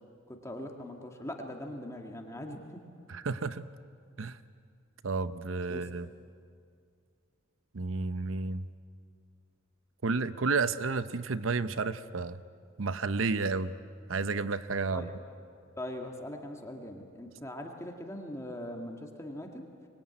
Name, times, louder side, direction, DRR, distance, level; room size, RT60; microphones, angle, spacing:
voice 1, 0.3-2.8 5.7-5.9 14.9-15.1 15.8-19.7, left 1 dB, 15° left, 2 dB, 1.9 m, -41 dB
voice 2, 3.1-3.6 4.2-4.4 5.0-6.1 7.7-8.6 10.0-12.4 12.8-13.7 14.1-15.1, right 4 dB, 80° right, 13 dB, 0.8 m, -31 dB
24.5 x 22.0 x 9.6 m, 2.3 s
head